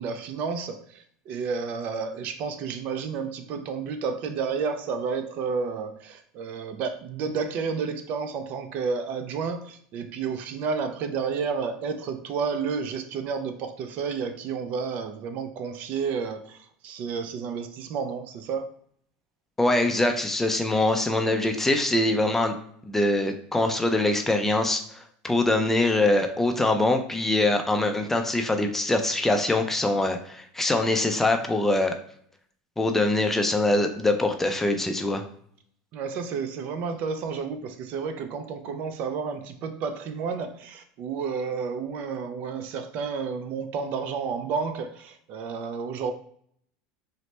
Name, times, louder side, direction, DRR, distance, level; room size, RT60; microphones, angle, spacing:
voice 1, 0.0-18.6 35.9-46.1, right 5 dB, 50° right, 8 dB, 0.4 m, -31 dB
voice 2, 19.6-22.6 22.9-31.9 32.8-35.2, left 2 dB, 10° left, 5 dB, 0.4 m, -23 dB
4.0 x 2.1 x 3.1 m, 0.63 s
supercardioid pair, 120°, 3 cm